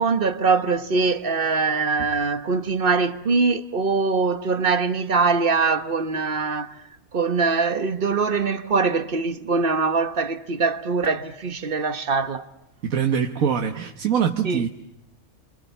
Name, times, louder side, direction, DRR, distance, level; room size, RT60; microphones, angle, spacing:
voice 1, 0.0-6.8 7.1-12.5 14.4-14.7, right 4 dB, 40° right, 1.2 m, -22 dB
voice 2, 12.8-14.7, right 8 dB, 70° right, 1.6 m, -23 dB
29.0 x 27.0 x 7.1 m
omnidirectional pair, 1.5 m